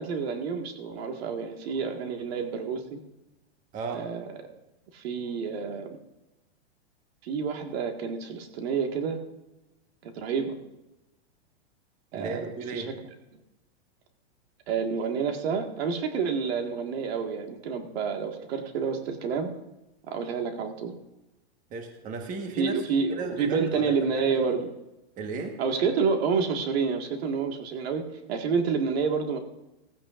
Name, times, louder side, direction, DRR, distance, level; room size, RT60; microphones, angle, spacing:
voice 1, 0.0-3.0 3.9-4.3 4.9-5.9 7.2-9.2 10.0-10.6 12.1-12.8 14.7-19.5 20.1-20.9 22.6-24.7 25.6-28.0 28.3-29.4, right 5 dB, 65° right, 4 dB, 1.9 m, -29 dB
voice 2, 3.7-4.1 12.1-12.9 21.7-22.8 23.1-24.2 24.5-24.6 25.2-25.5, right 4 dB, 25° right, 3 dB, 1.4 m, -35 dB
16.5 x 15.0 x 2.6 m, 0.99 s
supercardioid pair, 150°, 34 cm